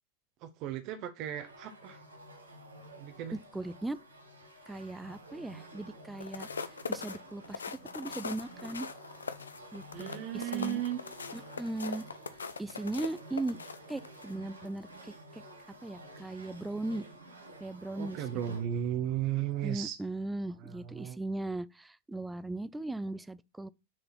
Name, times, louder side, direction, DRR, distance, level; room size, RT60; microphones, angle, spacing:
voice 1, 0.4-2.0 3.0-3.4 9.9-11.0 18.0-20.0 20.6-21.2, right 11 dB, 40° right, 0.9 m, -35 dB
sound 1, 1.3-18.7, right 1 dB, 80° right, 1.5 m, -51 dB
voice 2, 3.3-4.0 4.7-6.5 6.9-8.9 9.7-10.8 11.3-12.1 12.6-13.6 13.9-15.4 15.8-17.0 17.6-18.2 19.6-23.7, right 2 dB, 5° right, 0.4 m, -38 dB
sound 2, 6.1-14.3 14.8-15.0, left 5 dB, 70° left, 0.6 m, -41 dB
6.5 x 3.9 x 5.9 m
figure-of-eight pair, 90°, 0 cm